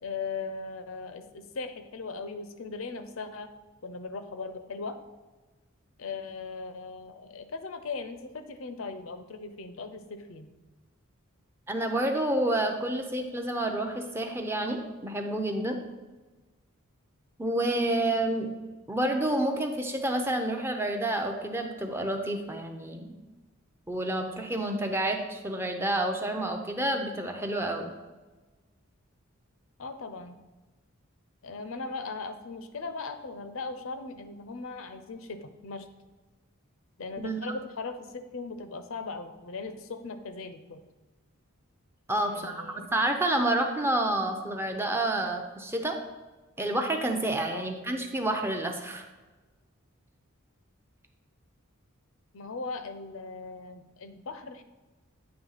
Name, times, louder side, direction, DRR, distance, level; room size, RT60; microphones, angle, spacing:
voice 1, 0.0-3.5 3.8-5.0 6.0-10.5 29.8-30.3 31.4-35.9 37.0-40.8 42.3-42.9 47.5-47.7 52.3-54.6, left 4 dB, 65° left, 9 dB, 0.6 m, -38 dB
voice 2, 11.7-15.8 17.4-18.5 18.9-23.0 23.9-27.9 37.2-37.4 42.1-46.0 46.6-49.0, right 1 dB, 10° right, 4 dB, 0.6 m, -29 dB
8.9 x 3.2 x 5.6 m, 1.2 s
head